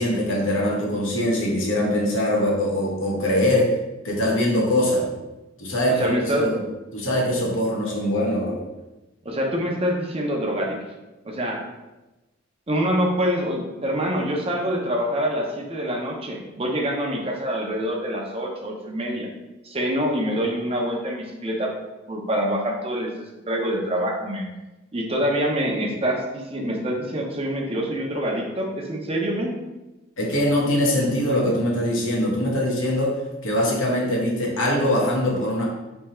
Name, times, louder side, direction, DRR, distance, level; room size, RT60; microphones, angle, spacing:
voice 1, 0.0-3.7 4.0-5.0 5.6-6.6 6.9-8.6 30.2-35.6, left 1 dB, 80° left, -3 dB, 1.1 m, -22 dB
voice 2, 6.0-6.6 9.2-10.8 11.2-11.6 12.7-19.3 19.6-21.7 22.1-24.5 24.9-29.5, equal, 30° right, 0 dB, 0.7 m, -25 dB
3.5 x 2.8 x 4.3 m, 1.1 s
head